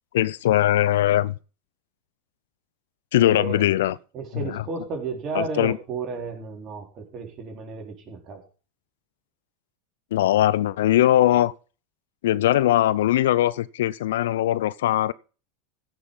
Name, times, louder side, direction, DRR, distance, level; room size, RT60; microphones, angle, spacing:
voice 1, 0.1-1.4 3.1-4.0 4.3-4.6 5.3-5.8 10.1-11.5 12.2-15.1, left 13 dB, 70° left, 0.5 m, -20 dB
voice 2, 3.2-3.7 4.1-8.4, right 4 dB, 40° right, 4.2 m, -33 dB
15.0 x 6.3 x 5.4 m
hypercardioid pair, 85°, 0 cm